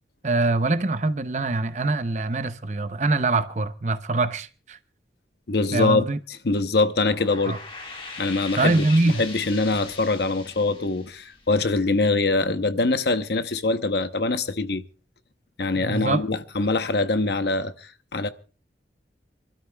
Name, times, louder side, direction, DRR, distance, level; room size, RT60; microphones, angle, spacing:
voice 1, 0.2-4.8 5.7-6.2 7.5-7.6 8.6-9.2 15.7-16.2, right 2 dB, 40° right, 0.6 m, -23 dB
voice 2, 5.5-6.1 6.4-7.6 8.2-14.8 15.6-18.3, left 3 dB, 65° left, 0.8 m, -23 dB
sound 1, 6.9-12.1, left 3 dB, 30° left, 1.8 m, -41 dB
28.0 x 13.0 x 2.3 m
head